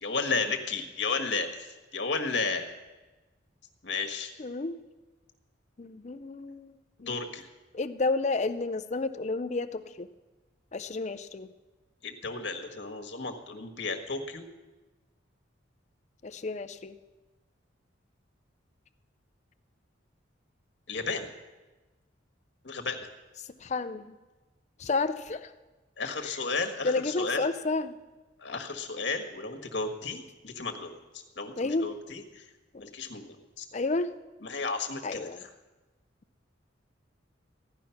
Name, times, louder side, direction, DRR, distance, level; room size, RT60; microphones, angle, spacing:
voice 1, 0.0-2.7 3.8-4.3 7.0-7.5 12.0-14.4 20.9-21.2 22.6-23.1 26.0-27.4 28.4-32.4 32.8-33.3 33.6-33.7 34.4-35.3, left 4 dB, 65° left, 4 dB, 1.5 m, -33 dB
voice 2, 4.4-4.8 5.8-7.2 7.7-10.1 10.7-11.5 16.2-17.0 23.6-24.1 24.8-25.5 26.2-26.4 26.8-28.0 31.6-31.9 33.7-34.1 35.0-35.5, left 3 dB, 35° left, 12 dB, 0.5 m, -31 dB
15.5 x 11.5 x 5.8 m, 1.2 s
head